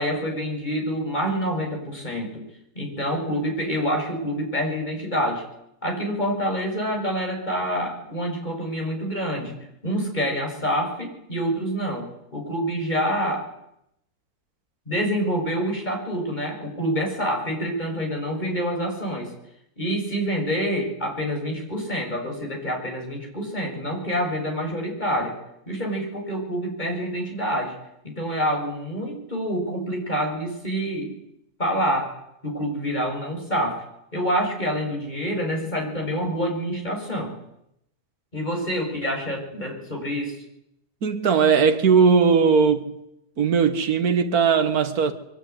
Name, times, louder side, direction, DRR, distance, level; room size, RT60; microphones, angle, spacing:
voice 1, 0.0-2.4 2.8-5.4 5.8-9.6 9.8-13.4 14.9-19.3 19.8-25.4 25.7-27.7 28.0-31.1 31.6-32.1 32.4-33.8 34.1-37.3 38.3-40.4, equal, 25° left, 7.0 m, -27 dB
voice 2, 41.0-43.0 43.4-45.1, right 6 dB, 60° right, 2.2 m, -19 dB
22.5 x 22.5 x 9.7 m
omnidirectional pair, 1.8 m